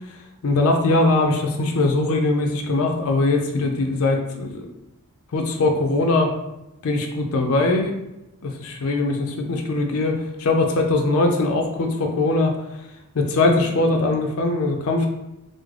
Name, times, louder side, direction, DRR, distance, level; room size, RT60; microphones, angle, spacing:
voice 1, 0.4-4.6 5.3-6.3 6.8-7.9 8.4-12.5 13.1-15.1, left 2 dB, 80° left, 3 dB, 0.4 m, -21 dB
3.7 x 2.0 x 3.1 m, 0.91 s
head